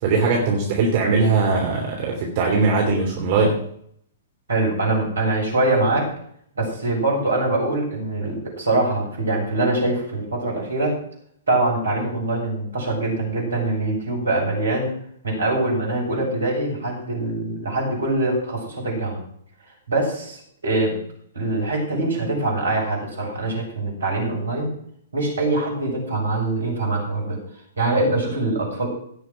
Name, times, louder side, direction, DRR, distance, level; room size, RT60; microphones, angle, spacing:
voice 1, 0.0-3.5, right 4 dB, 45° right, -1 dB, 3.2 m, -20 dB
voice 2, 4.5-6.1 6.5-11.0 11.5-14.9 15.2-19.2 19.9-21.0 21.3-24.7 25.1-27.4 27.8-28.9, right 2 dB, 75° right, -1 dB, 6.7 m, -23 dB
17.0 x 6.7 x 6.1 m, 0.65 s
figure-of-eight pair, 110°, 0 cm